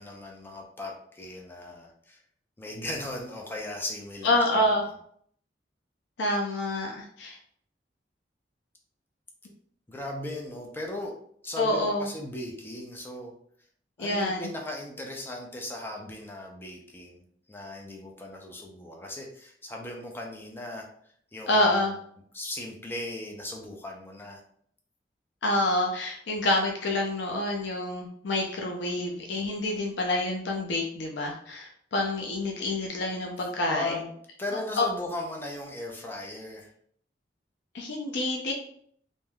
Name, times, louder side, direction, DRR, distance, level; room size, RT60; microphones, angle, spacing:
voice 1, 0.0-2.2 2.6-4.9 9.9-11.1 11.4-13.3 14.0-20.9 21.3-22.0 22.3-24.4 33.7-34.0 34.4-36.7, left 1 dB, 15° left, 0 dB, 0.5 m, -38 dB
voice 2, 4.2-4.8 6.2-7.4 11.6-12.1 14.0-14.5 21.5-21.9 25.4-34.0 34.8-34.9 37.7-38.5, left 1 dB, 80° left, 1 dB, 0.5 m, -27 dB
3.5 x 2.6 x 2.2 m, 0.64 s
head